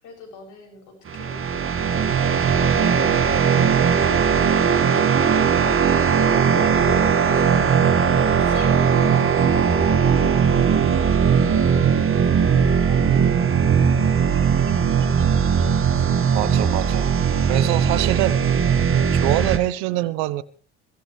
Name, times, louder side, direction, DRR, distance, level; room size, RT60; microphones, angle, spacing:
voice 1, 0.0-5.9 6.5-10.6 12.1-13.9 14.2-15.7 15.9-16.1, left 3 dB, 60° left, 7.2 m, -42 dB
sound 1, 1.1-19.6, right 7 dB, 40° right, 1.8 m, -19 dB
voice 2, 16.3-17.1 17.5-18.4 19.1-20.4, right 17 dB, 75° right, 1.0 m, -24 dB
23.5 x 16.0 x 3.3 m
hypercardioid pair, 65°, 33 cm